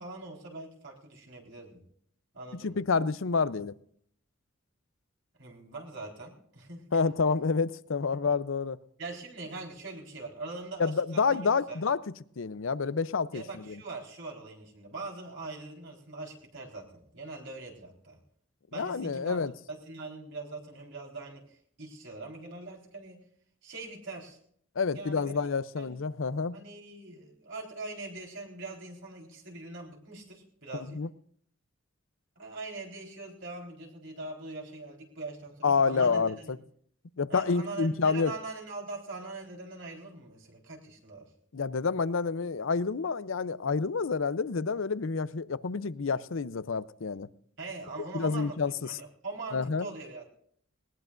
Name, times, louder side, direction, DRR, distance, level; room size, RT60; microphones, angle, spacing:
voice 1, 0.0-1.8 2.3-2.8 5.4-6.9 9.0-11.8 13.3-18.2 18.7-19.4 19.7-23.2 23.6-24.4 24.9-25.3 25.8-25.9 26.5-31.0 32.4-36.5 37.3-41.3 47.6-48.6 48.9-50.3, right 3 dB, 65° right, 4.1 m, -42 dB
voice 2, 2.5-3.7 6.9-8.8 10.8-12.0 12.4-13.8 18.7-19.5 24.8-26.6 30.7-31.1 35.6-36.6 37.2-38.3 41.5-47.3 48.1-49.0 49.5-49.9, left 5 dB, 80° left, 0.6 m, -28 dB
20.0 x 19.5 x 2.6 m
head